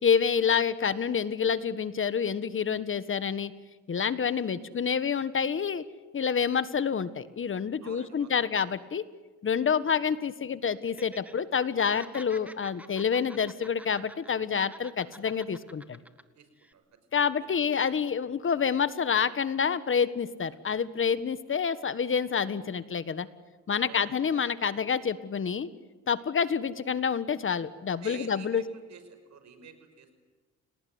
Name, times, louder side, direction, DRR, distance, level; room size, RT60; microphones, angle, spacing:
voice 1, 0.0-3.5 3.9-5.8 6.1-9.0 9.4-16.0 17.1-23.3 23.7-25.7 26.1-28.6, left 6 dB, 45° left, 14 dB, 1.5 m, -28 dB
voice 2, 7.8-8.3 16.3-16.8 17.1-17.5 17.8-17.9 23.8-24.1 28.0-30.2, right 7 dB, 65° right, 9 dB, 6.0 m, -49 dB
Laughter, 10.8-11.3 11.6-14.3 14.6-16.2 16.6-16.7, right 1 dB, 5° right, 1.9 m, -48 dB
29.5 x 19.0 x 9.6 m, 1.3 s
cardioid pair, 90°, 30 cm